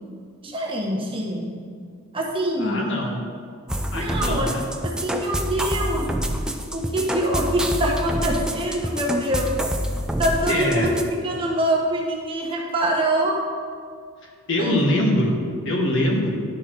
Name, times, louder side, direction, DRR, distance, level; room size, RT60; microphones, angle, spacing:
voice 1, 0.4-1.5 2.1-2.8 3.9-4.5 4.8-6.2 6.7-9.6 10.2-13.4 14.6-14.8, right 1 dB, 25° right, -2 dB, 1.0 m, -24 dB
voice 2, 2.6-3.2 3.9-4.6 10.5-10.9 14.5-16.4, left 1 dB, 60° left, 0 dB, 1.3 m, -23 dB
sound 1, 3.7-11.0, equal, 5° right, 0.3 m, -27 dB
11.0 x 4.5 x 4.6 m, 2.1 s
head